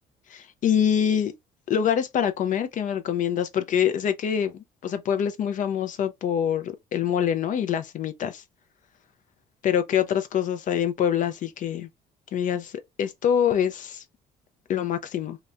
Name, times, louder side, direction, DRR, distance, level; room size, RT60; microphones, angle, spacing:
voice 1, 0.3-1.3 1.7-8.4 9.6-11.9 12.3-12.7 13.0-14.0 14.7-15.4, left 9 dB, 50° left, 0.4 m, -25 dB
2.8 x 2.1 x 2.3 m
cardioid pair, 110°, 17 cm